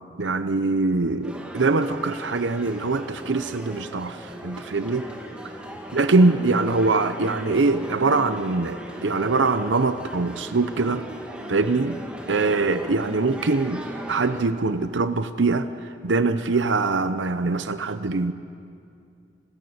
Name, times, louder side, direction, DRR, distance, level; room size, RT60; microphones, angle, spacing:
voice 1, 0.2-5.1 5.9-11.0 11.5-12.0 12.3-15.7 16.0-18.3, right 3 dB, 85° right, 11 dB, 0.8 m, -23 dB
sound 1, 1.2-14.4, equal, 5° right, 2.3 m, -38 dB
29.0 x 15.0 x 8.1 m, 2.4 s
head